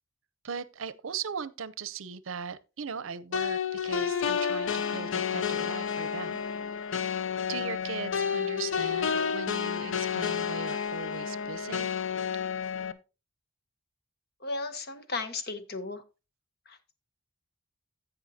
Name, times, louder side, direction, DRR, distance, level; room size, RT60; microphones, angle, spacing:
voice 1, 0.4-6.6 7.5-11.9, right 6 dB, 70° right, 0.6 m, -39 dB
sound 1, 3.3-12.9, left 7 dB, 65° left, 0.6 m, -30 dB
voice 2, 14.4-16.0 16.7-16.8, left 3 dB, 50° left, 1.1 m, -35 dB
16.0 x 5.4 x 2.8 m
head